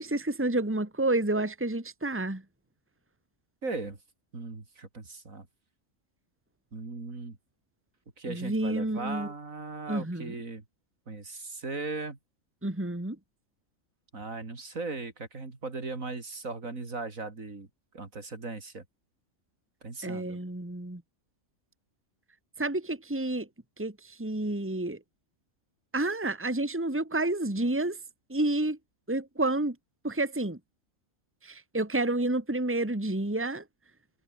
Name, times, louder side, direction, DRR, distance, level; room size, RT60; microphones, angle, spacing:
voice 1, 0.0-2.4 8.3-9.3 9.9-10.3 12.6-13.2 20.0-21.0 22.6-23.5 23.8-23.9 24.2-25.0 25.9-28.0 28.3-28.8 29.1-29.8 30.0-30.6 31.4-33.6, right 2 dB, 10° right, 2.1 m, -29 dB
voice 2, 3.6-4.0 4.3-5.5 6.7-7.4 8.2-10.6 11.1-12.2 14.1-17.7 17.9-18.8 19.8-20.4, right 3 dB, 70° right, 3.7 m, -38 dB
omnidirectional pair, 1.5 m